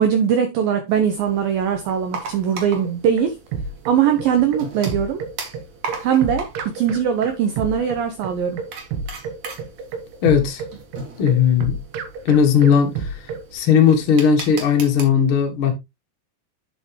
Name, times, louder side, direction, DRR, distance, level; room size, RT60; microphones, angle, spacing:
voice 1, 0.0-3.4 3.9-5.2 6.0-8.6, right 8 dB, 90° right, 2.0 m, -20 dB
sound 1, 0.9-15.0, right 4 dB, 50° right, 2.5 m, -38 dB
sound 2, 2.8-13.5, right 5 dB, 70° right, 2.9 m, -30 dB
voice 2, 10.2-10.6 11.2-11.8 12.2-13.2 13.5-15.7, left 7 dB, 75° left, 1.2 m, -17 dB
8.9 x 6.5 x 3.0 m
omnidirectional pair, 5.4 m